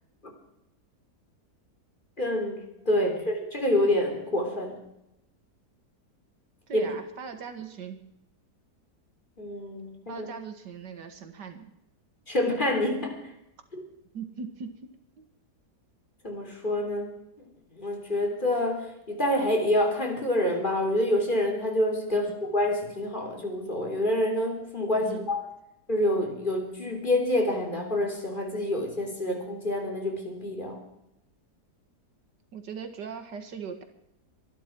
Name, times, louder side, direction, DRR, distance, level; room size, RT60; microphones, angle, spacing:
voice 1, 2.2-4.8 6.7-6.9 9.4-10.3 12.3-13.2 13.7-13.8 16.2-17.1 17.7-25.4 25.9-30.8, left 1 dB, 30° left, 2 dB, 3.5 m, -27 dB
voice 2, 6.7-8.0 10.1-11.7 14.1-14.7 15.2-15.3 22.3-22.4 25.0-25.3 32.5-33.8, right 6 dB, 85° right, 7 dB, 2.2 m, -39 dB
24.0 x 12.0 x 4.6 m, 0.83 s
omnidirectional pair, 1.8 m